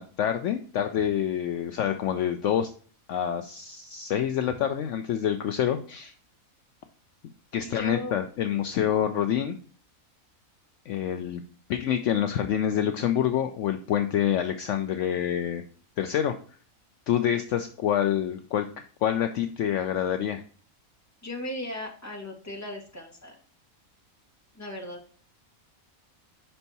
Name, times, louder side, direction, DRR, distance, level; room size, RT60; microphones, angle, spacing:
voice 1, 0.0-2.7 3.1-6.1 7.5-9.5 10.9-11.4 11.7-15.6 16.0-16.4 17.1-18.7 19.0-20.4, left 10 dB, 70° left, 8 dB, 0.8 m, -27 dB
voice 2, 7.6-8.2 21.2-23.4 24.5-25.0, left 1 dB, 10° left, 0 dB, 1.5 m, -37 dB
5.6 x 4.5 x 4.0 m, 0.43 s
omnidirectional pair, 1.5 m